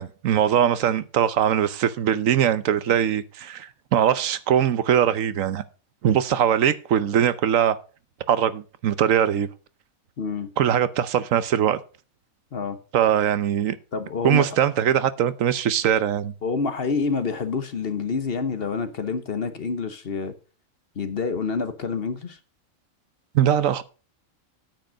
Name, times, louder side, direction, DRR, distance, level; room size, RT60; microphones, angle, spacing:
voice 1, 0.0-5.6 6.0-7.8 8.3-9.5 10.6-11.8 12.9-13.8 14.2-16.3 23.3-23.8, right 9 dB, 75° right, 1.1 m, -21 dB
voice 2, 10.2-10.5 12.5-12.8 13.9-14.5 16.4-20.3 21.0-22.4, left 4 dB, 50° left, 1.1 m, -27 dB
9.1 x 7.6 x 5.1 m
omnidirectional pair, 1.4 m